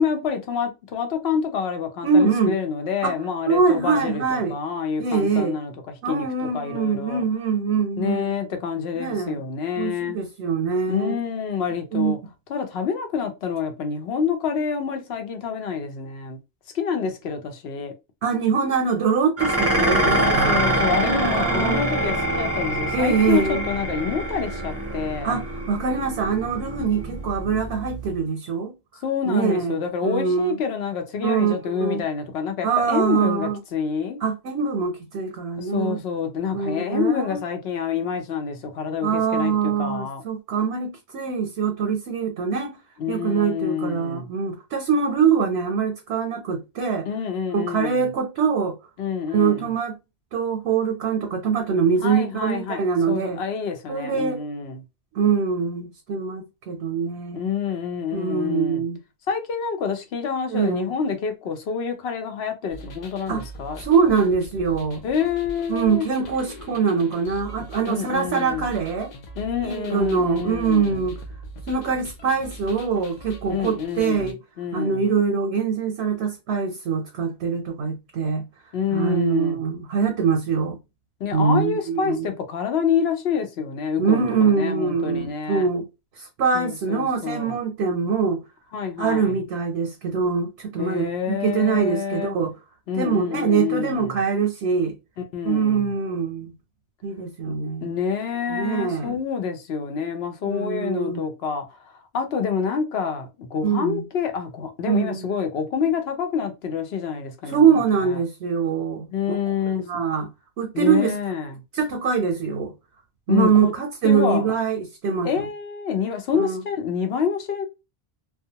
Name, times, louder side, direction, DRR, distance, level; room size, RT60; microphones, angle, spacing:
voice 1, 0.0-5.7 6.1-7.2 8.0-10.2 10.9-12.2 12.5-16.4 16.7-17.9 20.2-25.4 29.0-34.2 35.6-40.2 43.0-44.3 47.0-48.1 49.0-49.7 52.0-54.8 57.3-58.8 59.3-63.8 65.0-66.1 67.8-68.7 69.3-71.1 73.5-75.0 78.7-79.6 81.2-85.7 86.5-87.6 88.7-89.4 90.8-92.3 92.9-94.2 95.3-95.9 97.5-97.6 97.8-108.2 109.1-110.0 110.7-111.6 113.3-113.7 114.0-114.5 115.2-117.7, left 6 dB, 75° left, 0.9 m, -27 dB
voice 2, 2.0-2.5 3.0-3.2 3.5-4.6 5.0-5.6 6.0-8.3 8.9-9.4 9.8-11.2 11.9-12.1 18.2-20.6 20.9-21.8 22.9-23.6 25.2-28.7 29.3-29.8 30.0-30.6 31.2-32.0 32.6-33.6 34.2-36.0 36.5-37.4 39.0-42.8 43.1-47.1 47.5-48.7 49.3-49.9 50.3-53.4 53.9-54.4 55.1-57.4 58.1-59.0 60.5-60.9 63.3-63.4 63.8-65.0 65.7-69.1 69.6-71.2 71.7-74.4 74.7-78.4 78.9-80.8 81.3-82.3 84.0-85.8 86.2-88.4 89.0-92.5 92.9-95.0 95.4-96.5 97.0-98.0 98.5-99.1 100.5-101.2 103.6-104.0 104.9-105.3 107.5-109.1 109.8-110.3 110.6-111.1 111.7-112.7 113.3-115.4 116.3-116.6, right 5 dB, 85° right, 0.9 m, -23 dB
Dishes pots and pans, 19.4-28.2, right 1 dB, 20° right, 0.4 m, -25 dB
sound 1, 62.7-74.3, equal, 55° left, 0.6 m, -41 dB
2.3 x 2.2 x 2.7 m
omnidirectional pair, 1.1 m